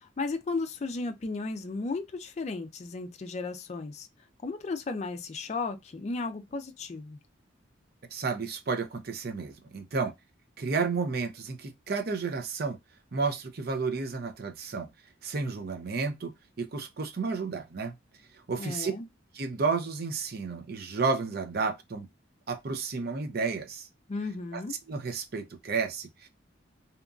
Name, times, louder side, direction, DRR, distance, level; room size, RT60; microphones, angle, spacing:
voice 1, 0.0-4.1 4.4-7.2 18.6-19.1 24.1-24.8, left 3 dB, 35° left, 0.3 m, -34 dB
voice 2, 8.1-10.1 10.6-12.8 13.1-14.9 15.2-17.9 18.5-18.9 19.3-22.1 22.5-23.9 24.5-24.6 24.9-26.3, right 4 dB, 50° right, 0.5 m, -31 dB
2.8 x 2.5 x 2.3 m
head